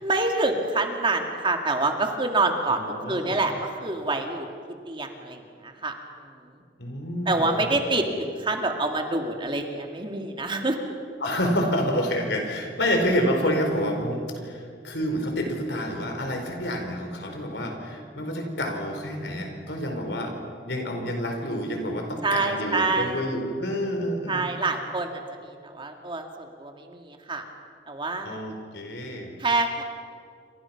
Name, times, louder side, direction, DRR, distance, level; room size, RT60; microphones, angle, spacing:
voice 1, 0.0-4.5 4.9-5.9 7.3-10.9 22.2-23.3 24.3-27.4 27.9-28.4 29.4-29.8, right 2 dB, 30° right, 4 dB, 2.3 m, -27 dB
voice 2, 2.7-3.4 6.8-8.0 11.2-20.3 20.6-24.5 28.2-29.3, equal, 70° left, 3 dB, 4.7 m, -28 dB
28.5 x 26.0 x 6.0 m, 2.2 s
head